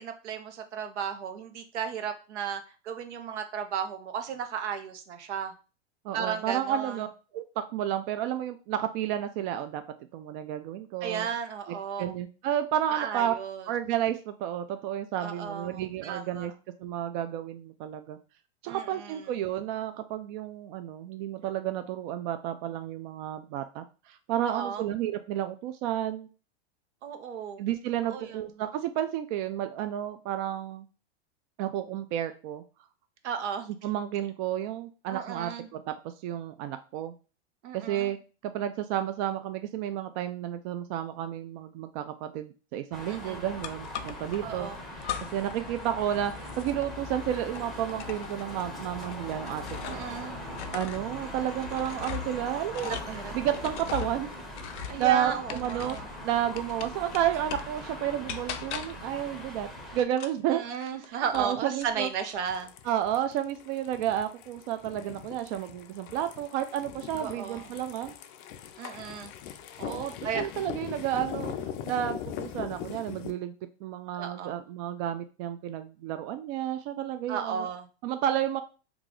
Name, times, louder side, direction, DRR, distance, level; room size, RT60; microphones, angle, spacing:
voice 1, 0.0-5.5 6.1-7.0 11.0-12.1 12.9-13.7 15.2-16.5 18.7-19.3 24.4-24.8 27.0-27.6 28.0-28.4 33.2-33.7 35.1-35.7 37.6-38.1 43.1-43.5 44.4-44.8 49.8-50.4 52.8-53.3 54.9-56.1 60.5-62.7 67.2-67.7 68.8-69.3 69.8-70.5 74.1-74.6 77.3-77.9, right 7 dB, 85° right, 7 dB, 0.8 m, -35 dB
voice 2, 6.0-7.1 7.3-9.8 10.1-11.3 11.7-13.4 13.7-16.5 16.8-18.2 18.6-26.3 27.6-30.9 31.6-32.6 33.8-35.9 36.2-37.1 37.7-38.2 38.4-44.7 45.0-49.6 49.9-50.0 50.7-53.0 53.3-54.3 55.0-56.0 56.2-60.6 61.1-62.1 62.9-68.1 69.9-71.6 71.8-73.5 73.8-77.7 78.0-78.6, right 11 dB, 45° right, 9 dB, 0.4 m, -31 dB
sound 1, 42.9-60.0, left 1 dB, ahead, 0.7 m, -41 dB
sound 2, 43.6-44.4 45.0-45.6 45.9-50.2 50.5-56.2 56.6-57.8 58.3-59.1 60.1-61.5 61.8-62.4, left 10 dB, 85° left, 0.5 m, -40 dB
sound 3, 62.5-73.3, left 9 dB, 35° left, 0.4 m, -40 dB
3.1 x 2.3 x 3.8 m, 0.34 s
hypercardioid pair, 130°, 34 cm